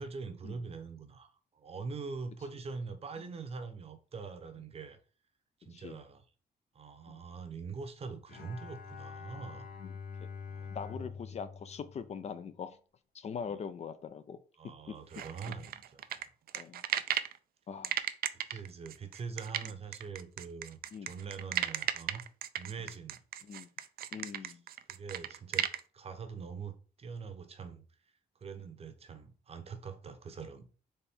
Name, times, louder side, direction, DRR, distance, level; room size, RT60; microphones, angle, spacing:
voice 1, 0.0-5.0 5.7-6.2 6.7-9.7 10.5-11.2 13.4-13.6 14.6-16.3 18.5-22.2 22.6-23.2 24.4-24.6 24.9-25.7 25.9-27.8 28.4-30.7, right 5 dB, 40° right, 0.7 m, -43 dB
voice 2, 5.6-6.0 7.1-7.2 9.8-10.0 10.7-12.8 13.1-14.4 15.5-15.6 16.5-16.8 17.7-17.9 18.5-18.6 19.6-19.7 20.9-21.1 23.4-23.7 24.1-24.6, left 6 dB, 45° left, 0.4 m, -42 dB
Bowed string instrument, 8.3-12.7, left 5 dB, 65° left, 0.8 m, -46 dB
sound 1, 15.1-17.4 17.8-25.8, right 11 dB, 70° right, 0.4 m, -35 dB
4.3 x 3.3 x 3.5 m
cardioid pair, 130°, 16 cm